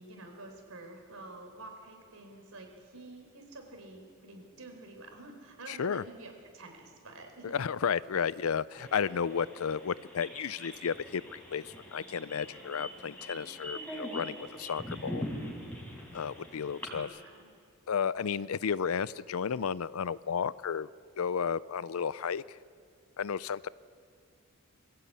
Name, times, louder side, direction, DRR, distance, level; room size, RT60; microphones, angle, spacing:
voice 1, 0.0-7.6 16.9-17.5, right 2 dB, 75° right, 4 dB, 4.3 m, -49 dB
voice 2, 5.7-6.0 7.4-15.2 16.1-17.1 17.9-20.9 21.2-22.6 23.2-23.7, left 7 dB, 70° left, 19 dB, 0.5 m, -33 dB
sound 1, 8.8-17.0, equal, 10° left, 4.1 m, -43 dB
23.0 x 15.5 x 8.7 m, 2.2 s
head